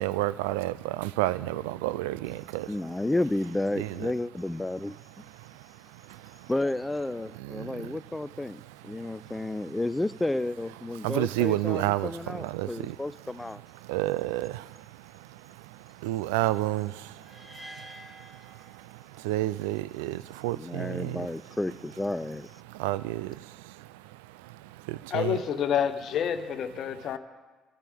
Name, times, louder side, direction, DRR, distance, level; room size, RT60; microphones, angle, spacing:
voice 1, 0.0-2.7 3.8-3.9 5.4-5.5 6.1-6.5 7.4-8.0 8.9-9.3 11.0-13.0 13.8-14.8 15.2-17.3 17.8-17.9 18.4-21.3 22.7-23.9 24.4-24.5 24.8-25.4, right 17 dB, 75° right, 0.4 m, -31 dB
voice 2, 2.7-4.9 6.5-13.6 20.6-22.5, left 2 dB, 15° left, 0.5 m, -31 dB
sound 1, 17.2-19.4, equal, 20° right, 2.7 m, -48 dB
voice 3, 25.1-27.2, left 9 dB, 60° left, 1.1 m, -28 dB
23.0 x 13.0 x 3.5 m
hypercardioid pair, 55°, 0 cm